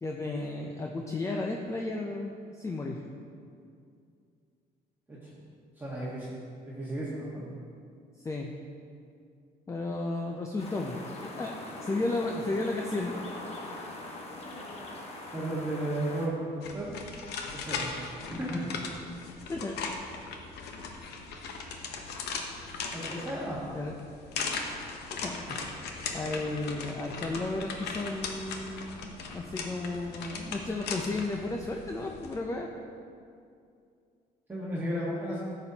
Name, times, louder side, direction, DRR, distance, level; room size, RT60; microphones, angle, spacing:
voice 1, 0.0-3.0 8.2-8.5 9.7-13.4 19.5-19.8 23.7-24.0 25.2-32.7, left 2 dB, 20° left, 2 dB, 0.5 m, -34 dB
voice 2, 5.8-6.3 6.6-7.5 15.3-16.5 16.7-17.0 17.5-17.9 18.3-18.7 22.9-23.6 34.5-35.4, right 1 dB, 10° right, -9 dB, 1.5 m, -34 dB
sound 1, 10.6-16.3, left 2 dB, 40° left, 1.2 m, -42 dB
sound 2, 16.6-32.4, left 4 dB, 75° left, 0.9 m, -38 dB
10.5 x 7.1 x 2.9 m, 2.4 s
cardioid pair, 110°, 17 cm